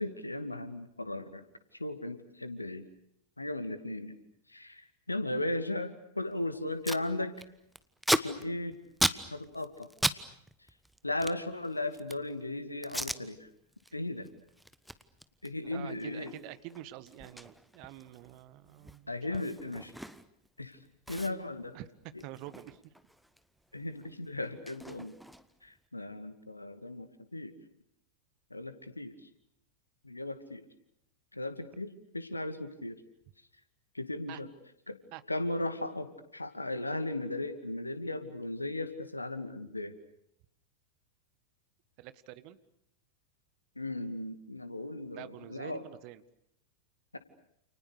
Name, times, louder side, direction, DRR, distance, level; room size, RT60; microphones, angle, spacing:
voice 1, 0.0-1.4 1.8-2.8 3.4-4.2 4.5-7.3 8.1-8.8 9.3-9.9 11.0-13.5 13.9-14.3 15.4-16.3 19.1-19.9 20.6-20.8 21.1-21.7 23.7-25.2 25.6-27.5 28.5-29.1 30.0-30.6 31.3-33.0 33.9-34.5 34.9-35.0 35.3-39.9 43.8-45.8 47.1-47.2, left 2 dB, 85° left, 11 dB, 2.4 m, -36 dB
Packing tape duct tape, 6.3-6.4 6.6-7.0 7.4-10.2 10.5-12.3 12.8-13.2 13.7-13.9 14.2-20.5 20.7-20.8 21.1-23.4 23.7-25.7, equal, ahead, 1.3 m, -36 dB
voice 2, 15.6-19.4 21.5-22.9 34.3-34.4 35.1-35.2 42.0-42.6 45.1-46.2, right 15 dB, 45° right, 14 dB, 1.7 m, -47 dB
29.5 x 29.5 x 6.7 m, 0.74 s
figure-of-eight pair, 90°, 0 cm